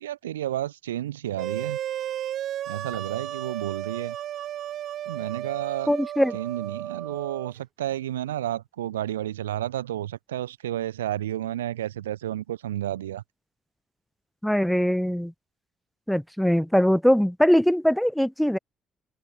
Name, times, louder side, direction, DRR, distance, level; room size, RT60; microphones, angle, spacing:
voice 1, 0.0-1.8 2.7-4.2 5.1-5.9 6.3-13.2, right 12 dB, 75° right, 0.9 m, -31 dB
sound 1, 1.4-7.5, right 11 dB, 55° right, 2.3 m, -34 dB
voice 2, 5.9-6.4 14.4-15.3 16.1-18.6, equal, ahead, 0.8 m, -21 dB
figure-of-eight pair, 45°, 0 cm